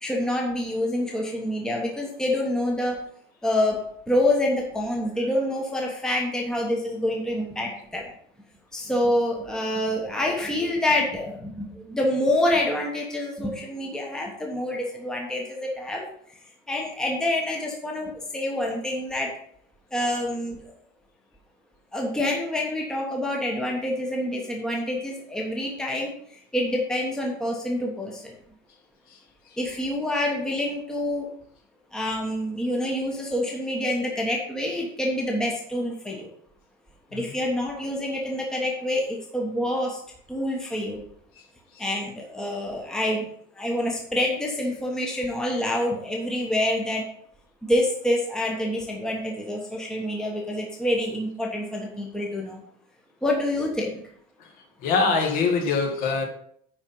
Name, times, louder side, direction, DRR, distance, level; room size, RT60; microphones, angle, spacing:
voice 1, 0.0-3.0 3.4-3.8 4.1-8.0 8.7-16.0 16.7-19.3 19.9-20.6 21.9-26.1 26.5-28.3 29.6-31.3 31.9-36.3 37.1-40.0 40.3-41.0 41.8-43.3 43.6-47.0 47.6-52.6 53.2-54.0, left 1 dB, 5° left, -1 dB, 1.1 m, -27 dB
voice 2, 54.8-56.3, left 4 dB, 55° left, 3 dB, 1.8 m, -23 dB
9.8 x 4.4 x 5.3 m, 0.65 s
cardioid pair, 180°, 18 cm